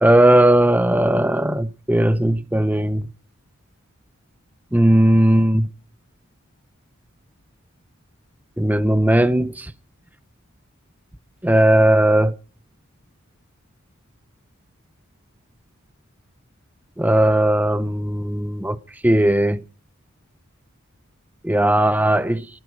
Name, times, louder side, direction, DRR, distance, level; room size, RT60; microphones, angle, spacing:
voice 1, 0.0-3.1 4.7-5.7 8.6-9.7 11.4-12.3 17.0-18.8 19.0-19.6 21.4-22.5, right 1 dB, 10° right, 0.6 m, -17 dB
20.0 x 8.8 x 6.3 m
head